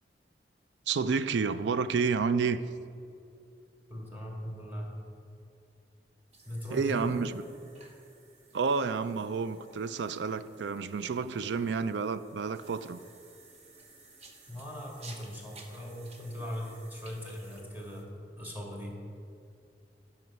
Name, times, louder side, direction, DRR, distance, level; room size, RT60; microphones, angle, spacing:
voice 1, 0.9-2.6 6.7-7.4 8.5-13.0, right 5 dB, 75° right, 0.4 m, -30 dB
voice 2, 3.9-5.0 6.5-7.2 14.5-19.0, equal, 10° right, 1.8 m, -40 dB
sound 1, 6.3-18.0, right 3 dB, 40° right, 1.0 m, -56 dB
11.0 x 5.8 x 5.4 m
head